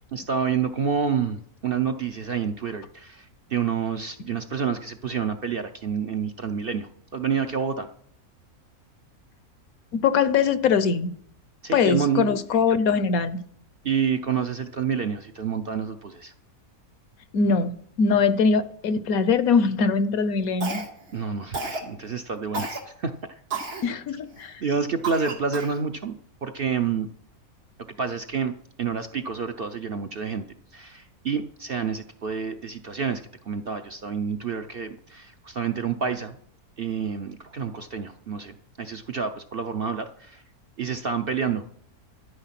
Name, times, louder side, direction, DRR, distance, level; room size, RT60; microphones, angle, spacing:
voice 1, 0.1-7.9 11.6-12.4 13.8-16.3 21.1-23.1 24.6-27.1 28.0-28.5 28.8-30.4 30.7-36.4 36.8-40.4 40.8-41.6, right 6 dB, 50° right, 0.7 m, -28 dB
voice 2, 9.9-11.1 11.7-13.4 17.3-20.8 23.8-24.6, left 5 dB, 70° left, 1.2 m, -22 dB
Cough, 20.6-21.1 21.5-21.9 22.5-22.8 23.5-23.9 24.4-24.5 25.0-25.8, right 3 dB, 85° right, 2.7 m, -32 dB
13.0 x 9.3 x 5.9 m
omnidirectional pair, 1.6 m